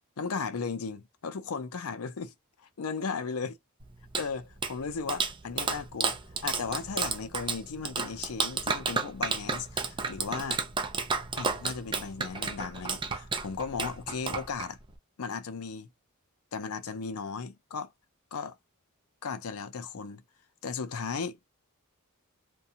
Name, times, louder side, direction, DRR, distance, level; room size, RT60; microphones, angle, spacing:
voice 1, 0.2-2.3 2.6-3.5 4.2-6.2 6.4-10.6 11.4-14.8 15.2-15.9 16.5-17.9 18.3-18.6 19.2-20.2 20.6-21.5, left 5 dB, 80° left, 0.5 m, -36 dB
Clapping, 3.8-15.0, right 4 dB, 20° right, 0.4 m, -32 dB
2.5 x 2.3 x 2.7 m
head